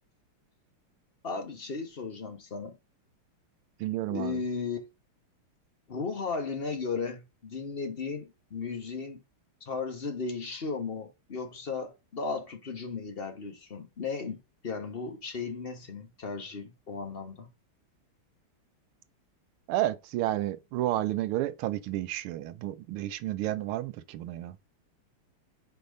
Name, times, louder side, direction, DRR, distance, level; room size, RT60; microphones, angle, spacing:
voice 1, 1.2-2.8 4.1-4.9 5.9-9.2 9.6-17.5, left 4 dB, 35° left, 1.0 m, -35 dB
voice 2, 3.8-4.4 19.7-24.6, right 14 dB, 80° right, 1.5 m, -31 dB
5.4 x 4.4 x 5.2 m
omnidirectional pair, 2.4 m